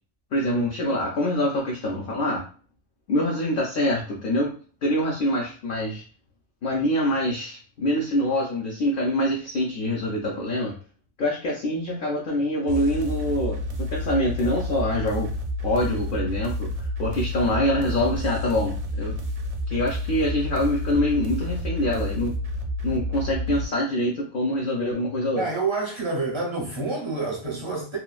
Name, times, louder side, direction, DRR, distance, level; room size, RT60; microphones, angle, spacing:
voice 1, 0.3-2.4 3.1-4.5 4.8-6.0 6.6-10.7 11.2-13.6 13.9-15.3 15.6-19.1 19.7-22.3 22.8-25.4, left 1 dB, 55° left, 0.6 m, -25 dB
sound 1, 12.7-23.6, left 1 dB, 80° right, 0.9 m, -30 dB
voice 2, 25.3-28.0, right 3 dB, 40° right, 0.4 m, -28 dB
3.0 x 2.2 x 2.3 m
omnidirectional pair, 1.3 m